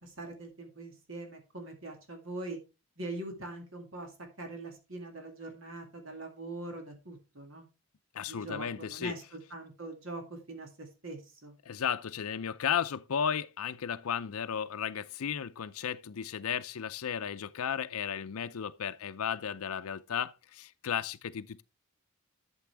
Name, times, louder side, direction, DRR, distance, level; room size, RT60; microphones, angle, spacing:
voice 1, 0.0-2.6 3.0-4.1 4.4-7.7 8.2-11.5, right 2 dB, 60° right, 2.3 m, -42 dB
voice 2, 8.1-9.1 11.7-21.6, left 8 dB, 75° left, 0.5 m, -34 dB
12.0 x 7.0 x 3.4 m
head